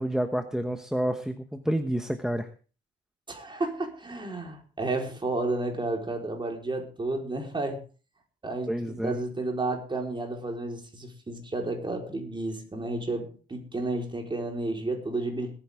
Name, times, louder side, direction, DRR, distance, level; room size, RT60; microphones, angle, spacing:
voice 1, 0.0-2.5 8.7-9.2, right 1 dB, 5° right, 7 dB, 1.1 m, -29 dB
voice 2, 3.3-7.8 8.4-15.5, right 2 dB, 25° right, 2 dB, 4.3 m, -32 dB
21.5 x 9.7 x 3.6 m, 0.38 s
cardioid pair, 90°, 20 cm